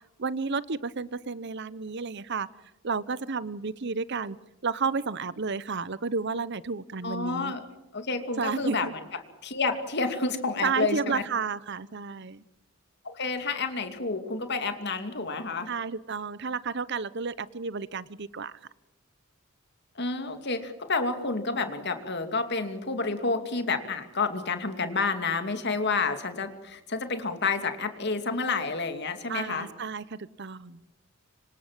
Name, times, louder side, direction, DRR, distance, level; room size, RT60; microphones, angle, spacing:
voice 1, 0.2-2.5 2.8-4.4 4.6-7.6 8.4-8.9 10.6-12.4 15.7-18.6 29.3-30.8, right 5 dB, 55° right, 18 dB, 0.9 m, -31 dB
voice 2, 7.0-7.6 7.9-9.0 9.4-11.2 13.0-15.7 20.0-29.7, left 4 dB, 55° left, 8 dB, 2.6 m, -29 dB
26.0 x 25.5 x 7.5 m, 0.95 s
head